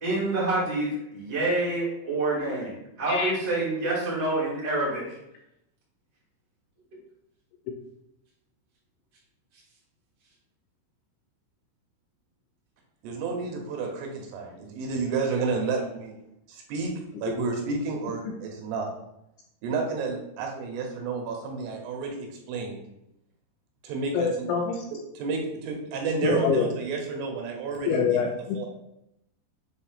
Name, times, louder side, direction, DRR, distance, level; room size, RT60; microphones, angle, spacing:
voice 1, 0.0-2.7 3.0-5.2, right 2 dB, 30° right, -7 dB, 0.7 m, -27 dB
voice 2, 13.0-16.1 16.5-16.9 17.2-18.9 19.6-22.8 23.8-24.5 25.2-28.0 28.6-28.7, right 4 dB, 75° right, 2 dB, 3.6 m, -31 dB
voice 3, 24.1-24.8 26.2-26.7 27.9-28.7, left 6 dB, 80° left, 1 dB, 2.7 m, -25 dB
7.9 x 2.7 x 5.7 m, 0.82 s
omnidirectional pair, 5.9 m